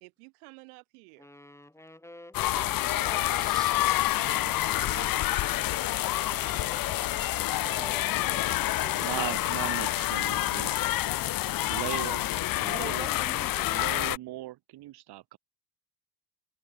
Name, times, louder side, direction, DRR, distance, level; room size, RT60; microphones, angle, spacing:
voice 1, 0.0-1.3 2.4-3.5 4.1-5.1 5.9-7.1 7.6-7.9 8.3-8.4, right 40 dB or more, 85° right, 1.0 m, -49 dB
sound 1, 1.2-8.0, left 1 dB, 5° left, 3.7 m, -51 dB
sound 2, 2.3-14.2, left 16 dB, 50° left, 0.8 m, -28 dB
voice 2, 3.3-3.8 7.6-9.3 12.6-14.0, right 2 dB, 10° right, 2.2 m, -45 dB
sound 3, 3.9-12.2, left 5 dB, 25° left, 3.8 m, -49 dB
voice 3, 9.0-10.8 11.7-13.1 13.7-15.4, right 15 dB, 60° right, 2.4 m, -38 dB
open air
supercardioid pair, 85°, 43 cm